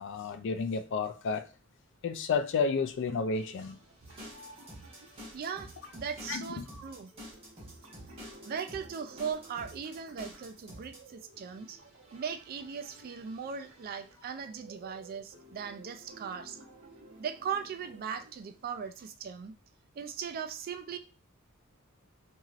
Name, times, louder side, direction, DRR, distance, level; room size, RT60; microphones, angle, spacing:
voice 1, 0.0-1.4 2.0-3.8 6.3-6.7, left 4 dB, 60° left, 0.4 m, -31 dB
sound 1, 3.1-19.1, right 2 dB, 75° right, 0.8 m, -55 dB
sound 2, 4.0-11.1, equal, 30° right, 1.2 m, -48 dB
voice 2, 5.3-7.1 8.4-11.8 12.1-16.6 17.2-19.5 20.0-21.0, right 7 dB, 45° right, 0.3 m, -38 dB
2.9 x 2.7 x 2.4 m
head